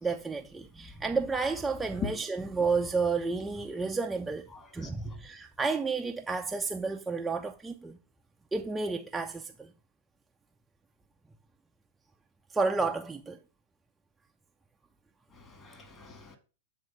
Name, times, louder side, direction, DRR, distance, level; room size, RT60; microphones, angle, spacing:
voice 1, 0.0-4.5 4.7-8.0 8.5-9.7 12.5-13.4, right 4 dB, 10° right, 0.5 m, -31 dB
voice 2, 4.5-5.2 15.3-16.4, left 5 dB, 25° left, 1.9 m, -41 dB
7.6 x 3.6 x 5.4 m
hypercardioid pair, 100°, 0 cm